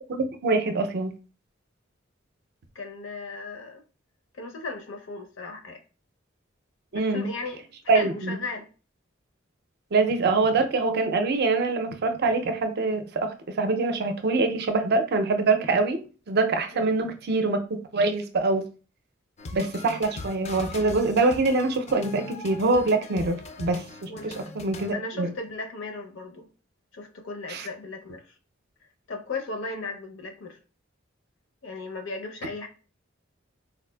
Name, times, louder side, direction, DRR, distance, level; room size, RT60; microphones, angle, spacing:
voice 1, 0.1-1.1 6.9-7.3 7.9-8.4 9.9-16.0 16.3-17.6 17.9-18.6 19.5-24.1 24.6-25.3 27.5-27.7, right 3 dB, 55° right, 6 dB, 0.5 m, -24 dB
voice 2, 2.7-3.8 4.3-5.8 6.9-8.7 16.7-16.8 24.1-24.3 24.9-26.5 26.9-28.3 29.1-30.6 31.6-32.7, left 3 dB, 70° left, 4 dB, 0.6 m, -36 dB
sound 1, 19.4-24.9, left 3 dB, 35° left, 0.3 m, -40 dB
4.0 x 2.4 x 2.2 m, 0.36 s
head